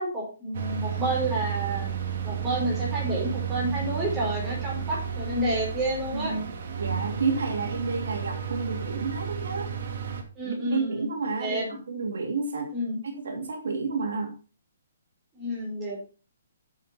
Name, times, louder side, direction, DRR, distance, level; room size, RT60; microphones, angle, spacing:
voice 1, 0.0-1.9 2.2-6.3 10.3-11.1 11.4-11.7 12.7-13.0 15.4-16.0, right 1 dB, 15° right, -4 dB, 4.8 m, -29 dB
sound 1, 0.5-10.2, right 8 dB, 55° right, 2.3 m, -32 dB
voice 2, 6.1-6.5 6.8-9.7 10.4-12.7 13.0-14.3, right 4 dB, 75° right, 3 dB, 2.7 m, -30 dB
11.0 x 7.2 x 4.2 m, 0.34 s
hypercardioid pair, 165°, 0 cm